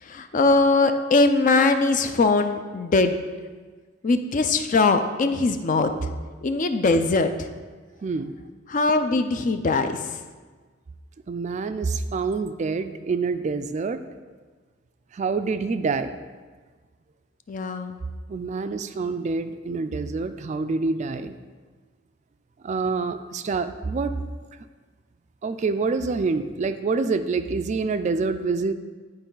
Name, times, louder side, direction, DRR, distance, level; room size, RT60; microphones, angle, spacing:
voice 1, 0.0-3.2 4.0-6.1 6.4-7.5 8.7-10.2 17.5-18.0, left 3 dB, 40° left, 8 dB, 0.5 m, -21 dB
voice 2, 8.0-8.3 11.3-14.0 15.1-16.1 18.3-21.3 22.6-24.2 25.4-28.7, right 4 dB, 35° right, 10 dB, 0.3 m, -26 dB
10.5 x 4.4 x 3.9 m, 1.4 s
head